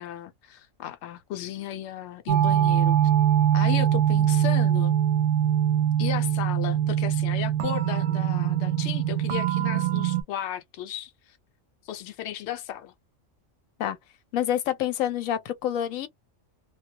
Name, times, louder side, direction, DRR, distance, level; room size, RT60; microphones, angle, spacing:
voice 1, 0.0-3.0 3.5-5.0 6.0-11.1 11.9-12.9, left 11 dB, 65° left, 0.8 m, -35 dB
sound 1, 2.3-10.2, right 10 dB, 70° right, 0.8 m, -23 dB
voice 2, 14.3-16.1, left 10 dB, 90° left, 1.0 m, -27 dB
2.2 x 2.1 x 2.7 m
omnidirectional pair, 1.4 m